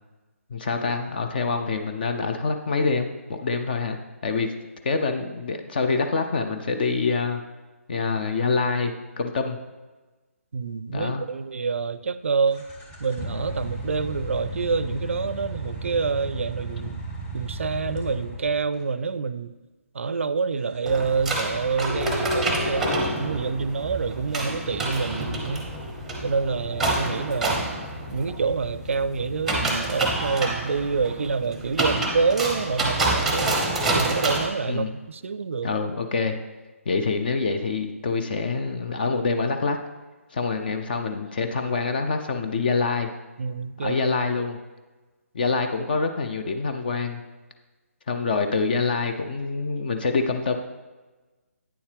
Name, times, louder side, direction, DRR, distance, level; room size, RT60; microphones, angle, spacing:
voice 1, 0.5-4.0 4.2-4.5 4.8-7.4 7.9-9.6 10.9-11.2 34.6-34.9 35.6-36.4 36.9-39.8 40.3-43.1 43.8-44.6 45.3-47.2 48.1-50.6, left 4 dB, 40° left, 6 dB, 0.5 m, -26 dB
voice 2, 10.5-12.7 13.0-17.0 17.3-19.5 19.9-25.7 26.2-27.6 28.1-33.6 33.9-35.7 43.4-44.0, right 5 dB, 60° right, 15 dB, 0.4 m, -27 dB
sound 1, 12.5-18.9 20.6-30.7, equal, 15° left, 1.1 m, -37 dB
sound 2, 20.8-34.5, right 2 dB, ahead, 0.8 m, -28 dB
9.0 x 7.1 x 3.3 m, 1.2 s
figure-of-eight pair, 145°, 8 cm